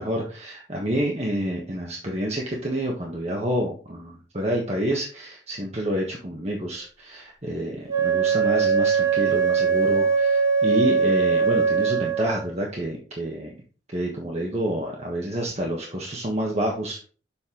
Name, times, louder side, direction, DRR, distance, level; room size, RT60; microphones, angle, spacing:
voice 1, 0.0-13.5 13.9-17.0, equal, 35° right, -1 dB, 1.3 m, -28 dB
Wind instrument woodwind instrument, 7.9-12.5, right 6 dB, 20° right, 1.8 m, -21 dB
7.2 x 5.3 x 3.9 m, 0.38 s
head